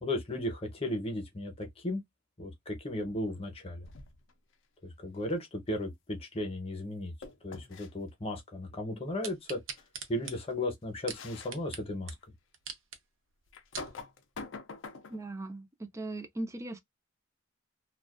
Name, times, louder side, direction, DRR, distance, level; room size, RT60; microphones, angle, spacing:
voice 1, 0.0-2.0 2.4-3.9 4.8-7.1 7.4-9.6 10.1-12.1, left 1 dB, 30° left, 0.8 m, -35 dB
sound 1, 3.8-4.3 7.2-7.9 9.8-9.9 10.2-10.4 11.1-11.5 12.1-12.2 13.5-15.3, left 4 dB, 65° left, 0.5 m, -45 dB
sound 2, 9.2-11.8 12.1-12.2 12.5-13.0 13.5-13.9 14.6-14.7, right 7 dB, 80° right, 0.6 m, -42 dB
voice 2, 15.1-16.8, right 2 dB, 15° right, 0.3 m, -39 dB
2.4 x 2.3 x 2.4 m
head